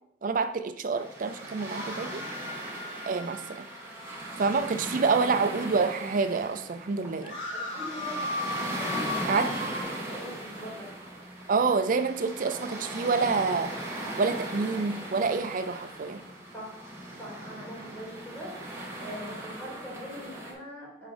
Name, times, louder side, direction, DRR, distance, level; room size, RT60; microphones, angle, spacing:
voice 1, 0.2-2.2 2.5-2.6 3.1-3.7 4.4-7.4 9.3-9.5 11.5-13.7 14.2-16.2, right 4 dB, 50° right, 10 dB, 0.4 m, -27 dB
sound 1, 0.9-20.5, right 1 dB, 15° right, 1.2 m, -38 dB
sound 2, 1.5-6.0 6.5-6.6 6.8-9.8, left 2 dB, 75° left, 1.8 m, -38 dB
voice 2, 7.5-10.9 16.5-16.7 17.2-18.5 19.0-21.1, equal, 10° left, -6 dB, 2.3 m, -42 dB
5.6 x 5.0 x 3.4 m, 0.75 s
head